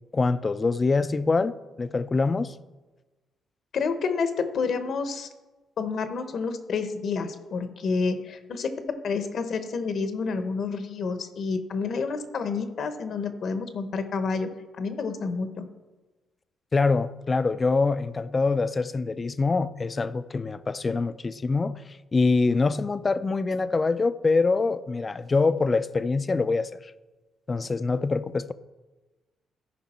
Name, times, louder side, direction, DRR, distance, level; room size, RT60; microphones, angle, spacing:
voice 1, 0.1-2.5 16.7-26.9 27.5-28.5, left 3 dB, 30° left, 14 dB, 0.4 m, -25 dB
voice 2, 3.7-5.3 5.8-15.7, left 4 dB, 60° left, 9 dB, 1.0 m, -29 dB
14.0 x 5.2 x 4.3 m, 1.2 s
cardioid pair, 90°, 0 cm